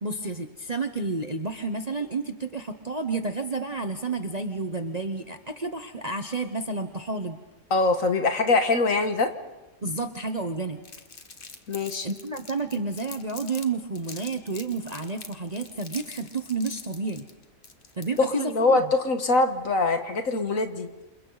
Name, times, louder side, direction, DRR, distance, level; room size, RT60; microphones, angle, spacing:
voice 1, 0.0-7.4 9.8-10.8 12.0-17.2 18.0-18.9, right 3 dB, 30° right, 6 dB, 0.9 m, -30 dB
voice 2, 7.7-9.3 11.7-12.1 18.2-20.9, left 3 dB, 55° left, 7 dB, 1.8 m, -23 dB
Crumpling crinkling, 10.8-13.7 13.9-18.4, left 4 dB, 35° left, 1.4 m, -44 dB
28.5 x 28.0 x 4.0 m, 1.1 s
omnidirectional pair, 1.7 m